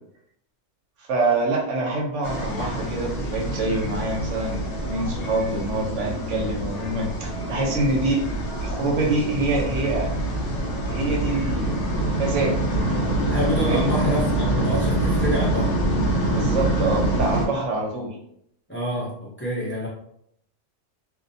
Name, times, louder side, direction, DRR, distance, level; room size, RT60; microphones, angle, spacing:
voice 1, 1.1-8.2 8.6-10.1 10.9-11.8 12.2-12.6 13.7-13.9 16.3-18.1, right 2 dB, 85° right, -1 dB, 1.0 m, -25 dB
sound 1, 2.2-17.5, right 1 dB, 70° left, 1.0 m, -25 dB
voice 2, 13.3-15.7 18.7-19.9, right 1 dB, 15° left, -6 dB, 0.5 m, -27 dB
2.4 x 2.1 x 2.6 m, 0.72 s
omnidirectional pair, 1.2 m